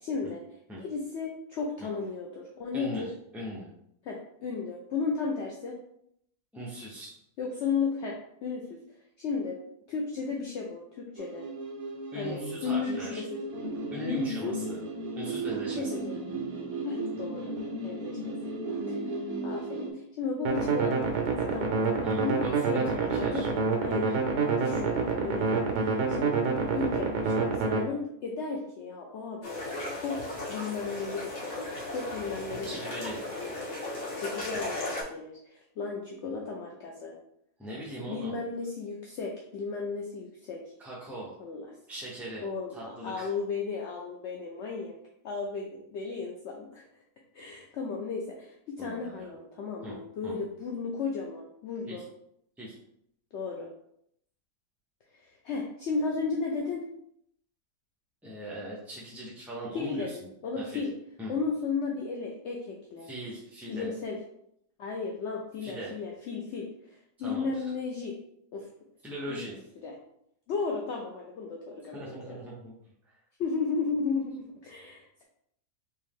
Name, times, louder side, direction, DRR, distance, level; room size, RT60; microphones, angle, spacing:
voice 1, 0.0-0.4 0.8-3.1 4.0-5.8 7.4-8.8 9.2-9.6 9.9-11.5 12.2-13.4 14.0-14.6 15.6-16.2 16.8-17.5 17.8-18.3 18.9-19.0 19.4-23.5 23.8-24.1 24.4-26.4 26.7-29.7 29.9-33.0 33.3-33.8 34.2-37.2 38.1-40.6 41.4-41.7 42.4-45.0 45.2-46.8 47.3-52.0 53.3-53.7 55.1-56.8 59.7-60.9 61.3-63.1 63.7-64.2 64.8-68.1 68.5-68.7 69.3-69.4 69.8-69.9 70.5-72.4 73.4-75.2, left 4 dB, 65° left, 0 dB, 0.7 m, -34 dB
voice 2, 2.7-3.0 3.3-3.7 6.5-7.1 12.1-13.2 13.9-14.8 15.1-15.9 22.0-23.5 24.0-24.2 32.6-33.2 37.6-38.4 40.8-41.3 41.9-42.4 42.7-43.3 48.8-49.3 49.8-49.9 50.2-50.4 51.9-52.0 52.6-52.8 58.2-60.2 60.6-60.8 61.2-61.3 63.0-63.9 65.6-65.9 67.2-67.6 69.0-69.5 71.9-72.7, right 1 dB, ahead, -6 dB, 0.4 m, -40 dB
sound 1, 11.2-19.9, right 2 dB, 65° right, 1.3 m, -35 dB
sound 2, 20.4-27.8, right 4 dB, 80° right, 1.4 m, -27 dB
sound 3, 29.4-35.0, left 2 dB, 50° left, 1.7 m, -36 dB
4.4 x 3.0 x 3.5 m, 0.73 s
omnidirectional pair, 1.7 m